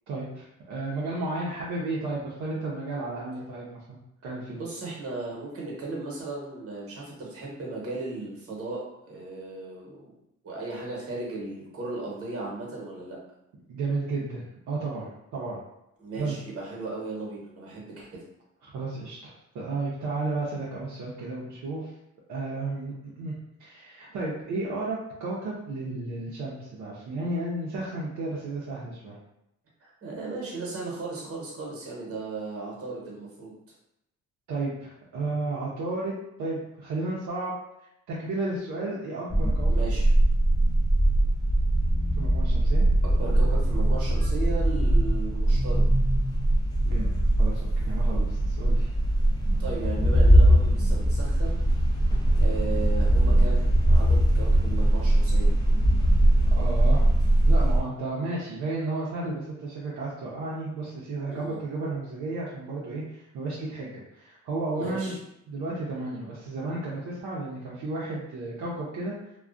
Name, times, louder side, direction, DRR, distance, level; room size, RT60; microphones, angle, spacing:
voice 1, 0.1-4.0 4.2-4.6 13.7-15.6 16.2-16.4 18.6-21.9 22.3-29.2 34.5-37.5 38.1-39.7 42.2-42.9 46.8-47.1 47.4-48.9 56.5-57.1 57.4-65.2 65.5-69.1, right 2 dB, 70° right, -6 dB, 0.6 m, -33 dB
voice 2, 4.5-10.1 10.4-13.2 16.0-18.1 29.8-33.5 39.7-40.1 43.0-45.8 49.6-51.6 52.3-55.5 61.3-61.6 64.7-65.2, right 3 dB, 50° right, -3 dB, 1.0 m, -36 dB
sound 1, 39.3-57.8, right 1 dB, 15° left, 0.5 m, -21 dB
2.3 x 2.1 x 2.4 m, 0.84 s
cardioid pair, 90°, 30 cm